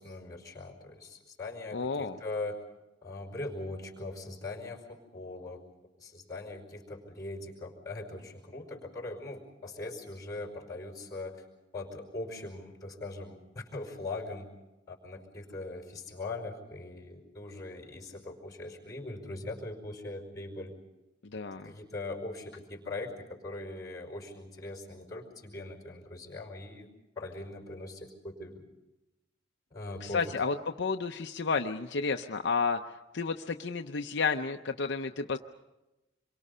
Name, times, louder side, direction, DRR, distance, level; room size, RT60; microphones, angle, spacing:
voice 1, 0.0-2.6 3.0-5.6 6.0-11.4 11.7-14.5 14.9-20.7 21.6-26.9 27.1-28.6 29.7-30.2, left 2 dB, 20° left, 2 dB, 5.0 m, -41 dB
voice 2, 1.7-2.2 21.2-21.7 30.0-35.4, left 4 dB, 60° left, 5 dB, 0.7 m, -31 dB
27.5 x 23.0 x 5.5 m, 1.0 s
head